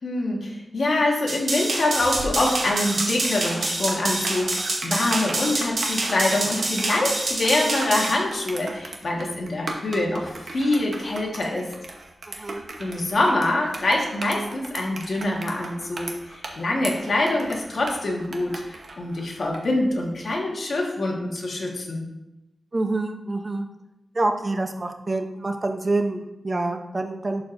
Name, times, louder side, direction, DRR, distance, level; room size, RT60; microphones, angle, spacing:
voice 1, 0.0-11.7 12.8-22.1, left 2 dB, 50° left, -1 dB, 1.4 m, -25 dB
sound 1, 1.3-8.1, right 2 dB, 90° right, 1.8 m, -27 dB
sound 2, 1.9-19.7, right 2 dB, 55° right, 0.9 m, -38 dB
voice 2, 12.3-12.6 22.7-23.7 24.1-27.4, right 2 dB, 25° right, 5 dB, 0.6 m, -26 dB
11.5 x 4.4 x 2.6 m, 0.91 s
wide cardioid pair, 160°, 0 cm